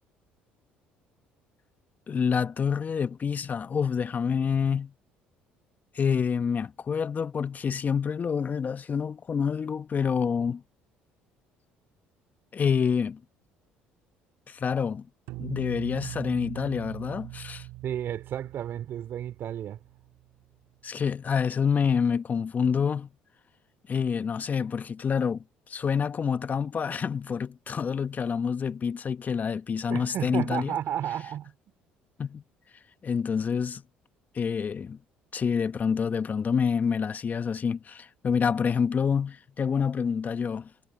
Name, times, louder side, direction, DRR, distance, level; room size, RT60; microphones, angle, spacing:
voice 1, 2.1-4.9 5.9-10.6 12.5-13.2 14.5-15.1 15.4-17.7 20.8-23.1 23.9-25.4 25.7-30.8 32.2-32.4 33.0-33.8 34.3-35.0 35.3-40.7, left 6 dB, 40° left, 1.3 m, -27 dB
sound 1, 15.3-20.2, right 18 dB, 75° right, 3.9 m, -41 dB
voice 2, 17.8-19.8 29.9-31.5, right 10 dB, 60° right, 3.8 m, -32 dB
supercardioid pair, 70°, 4 cm